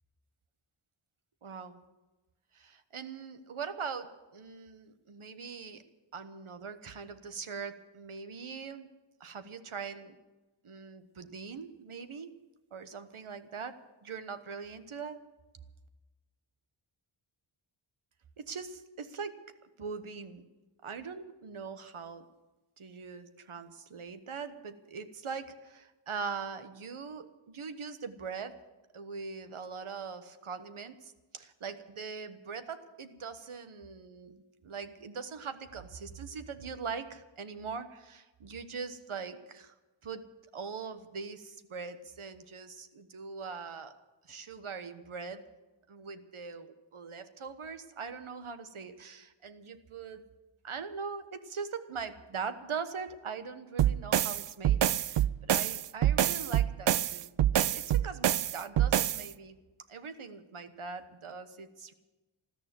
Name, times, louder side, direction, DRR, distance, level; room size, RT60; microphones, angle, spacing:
voice 1, 1.4-1.8 2.5-5.9 6.1-8.9 9.2-10.2 10.6-12.3 12.7-15.2 18.4-19.5 19.8-20.4 20.8-22.3 22.8-28.6 28.9-39.7 40.0-40.3 40.5-44.0 44.2-45.5 45.9-50.3 50.6-59.6 59.9-61.9, right 5 dB, 75° right, 10 dB, 1.3 m, -42 dB
sound 1, 53.8-59.3, right 11 dB, 60° right, 0.5 m, -27 dB
14.0 x 13.5 x 7.6 m, 1.1 s
wide cardioid pair, 60°, 50 cm